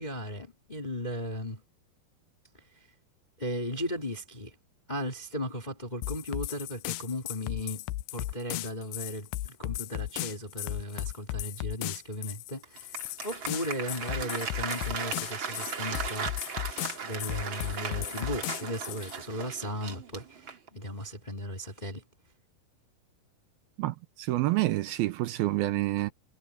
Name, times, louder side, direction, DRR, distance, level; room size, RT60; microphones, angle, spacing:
voice 1, 0.0-1.6 3.4-4.6 4.9-13.0 13.2-16.6 17.0-22.0, left 1 dB, 15° left, 2.1 m, -36 dB
sound 1, 6.0-19.2, left 17 dB, 85° left, 2.8 m, -36 dB
Applause, 12.6-20.8, right 5 dB, 40° right, 2.2 m, -37 dB
voice 2, 23.8-26.1, right 17 dB, 75° right, 2.5 m, -28 dB
omnidirectional pair, 4.7 m